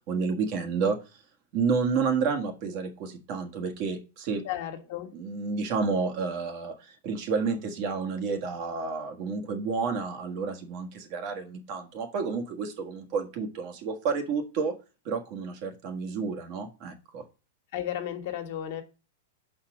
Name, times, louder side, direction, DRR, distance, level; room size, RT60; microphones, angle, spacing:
voice 1, 0.1-1.0 1.5-4.4 5.1-14.7 15.0-17.2, right 5 dB, 50° right, 1.5 m, -30 dB
voice 2, 4.4-5.1 17.7-18.8, left 11 dB, 60° left, 1.5 m, -33 dB
5.7 x 4.3 x 6.0 m
hypercardioid pair, 125°, 0 cm